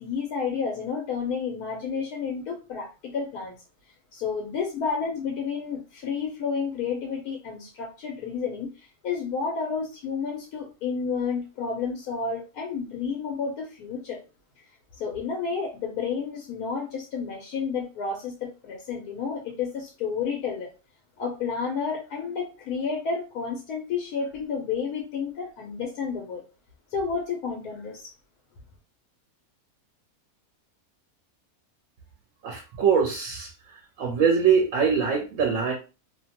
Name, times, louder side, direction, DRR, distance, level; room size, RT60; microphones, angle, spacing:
voice 1, 0.0-3.6 4.1-14.2 15.0-20.7 21.2-26.4 26.9-28.1, left 5 dB, 85° left, 0 dB, 1.2 m, -31 dB
voice 2, 32.4-35.7, right 6 dB, 65° right, 1 dB, 0.9 m, -23 dB
2.8 x 2.1 x 2.8 m, 0.31 s
omnidirectional pair, 1.6 m